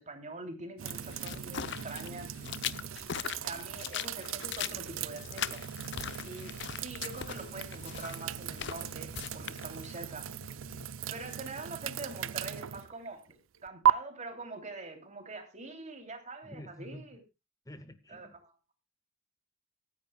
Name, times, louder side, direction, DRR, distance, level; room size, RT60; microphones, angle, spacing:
voice 1, 0.0-2.3 3.4-5.6 6.2-10.3 11.1-17.2 18.1-18.5, right 3 dB, 35° right, 6 dB, 3.0 m, -44 dB
sound 1, 0.8-10.8, left 9 dB, 60° left, 0.7 m, -41 dB
sound 2, 0.8-13.9, right 10 dB, 80° right, 0.5 m, -36 dB
voice 2, 16.4-17.1 17.7-18.4, left 1 dB, 15° left, 12 dB, 0.7 m, -48 dB
24.0 x 9.9 x 2.3 m, 0.25 s
head